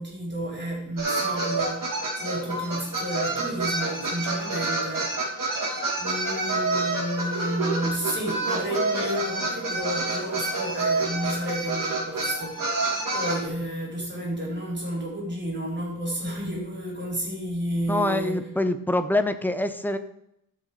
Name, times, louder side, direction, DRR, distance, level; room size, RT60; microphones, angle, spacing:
voice 1, 0.0-5.5 6.0-18.5, equal, 30° right, -3 dB, 4.2 m, -31 dB
sound 1, 1.0-13.4, right 3 dB, 65° right, 3.2 m, -28 dB
voice 2, 17.9-20.0, left 2 dB, 5° left, 9 dB, 0.7 m, -25 dB
13.5 x 6.2 x 5.1 m, 0.78 s
wide cardioid pair, 145°, 35 cm